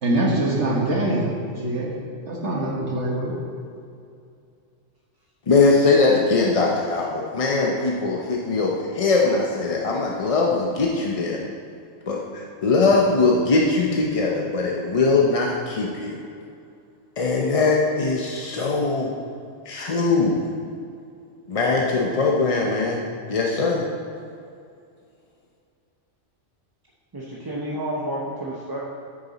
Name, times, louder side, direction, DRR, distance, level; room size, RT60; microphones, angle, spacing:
voice 1, 0.0-1.9 2.3-3.3, right 1 dB, 65° right, -2 dB, 1.7 m, -23 dB
voice 2, 5.5-11.4 12.1-16.2 17.2-19.1 19.7-20.4 21.5-23.0 23.3-23.9, left 3 dB, 40° left, -1 dB, 0.6 m, -21 dB
voice 3, 27.1-28.8, right 1 dB, 25° right, -5 dB, 0.6 m, -30 dB
8.9 x 6.9 x 4.0 m, 2.4 s
omnidirectional pair, 1.3 m